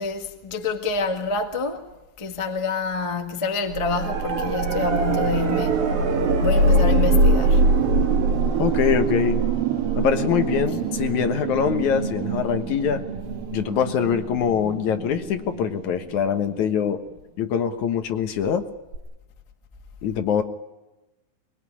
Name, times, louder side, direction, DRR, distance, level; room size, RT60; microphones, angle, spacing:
voice 1, 0.0-6.0 6.4-7.7, left 4 dB, 30° left, 0.5 m, -28 dB
sound 1, 3.7-16.6 18.9-19.0, right 3 dB, 75° right, 4.2 m, -23 dB
voice 2, 8.6-9.4 10.0-13.0 13.5-17.0 17.4-18.6 20.0-20.4, left 8 dB, 65° left, 2.4 m, -23 dB
23.5 x 21.0 x 9.9 m
omnidirectional pair, 4.1 m